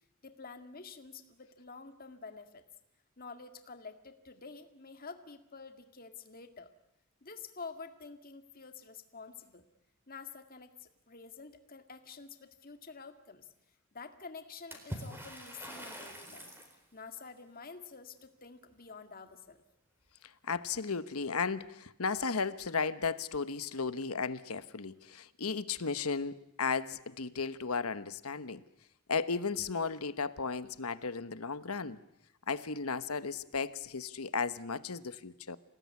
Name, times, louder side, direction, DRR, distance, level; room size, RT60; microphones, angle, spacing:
voice 1, 0.2-2.6 3.2-6.7 7.2-9.6 10.1-13.5 13.9-16.5 16.9-19.6, left 4 dB, 40° left, 7 dB, 2.1 m, -49 dB
Water / Splash splatter, 14.7-16.8, equal, 10° right, 4.1 m, -44 dB
voice 2, 20.4-28.6 29.1-32.0 32.5-35.6, left 5 dB, 75° left, 13 dB, 1.2 m, -35 dB
28.0 x 18.0 x 9.6 m, 0.86 s
head